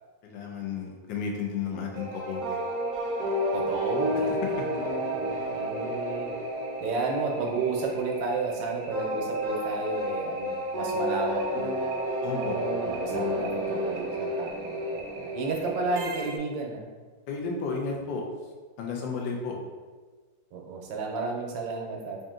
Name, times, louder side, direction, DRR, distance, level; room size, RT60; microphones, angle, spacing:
voice 1, 0.2-2.6 4.3-4.7 12.2-12.6 17.3-18.3 18.8-19.6, left 5 dB, 90° left, 0 dB, 1.4 m, -33 dB
sound 1, 1.9-16.4, equal, 60° right, 1.1 m, -31 dB
voice 2, 3.5-4.5 5.1-6.3 6.8-11.7 12.4-16.8 20.5-22.2, right 4 dB, 85° right, 1 dB, 1.4 m, -32 dB
3.7 x 2.7 x 3.6 m, 1.4 s
omnidirectional pair, 2.0 m